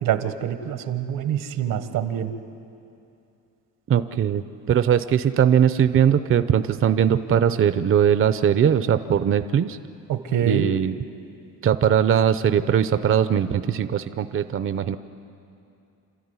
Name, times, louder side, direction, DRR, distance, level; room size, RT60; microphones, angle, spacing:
voice 1, 0.0-2.3 10.1-10.7, right 9 dB, 80° right, 10 dB, 1.4 m, -25 dB
voice 2, 3.9-9.8 10.4-10.9 11.6-15.0, right 8 dB, 40° right, 11 dB, 0.7 m, -20 dB
28.5 x 13.0 x 9.6 m, 2.6 s
cardioid pair, 120°, 32 cm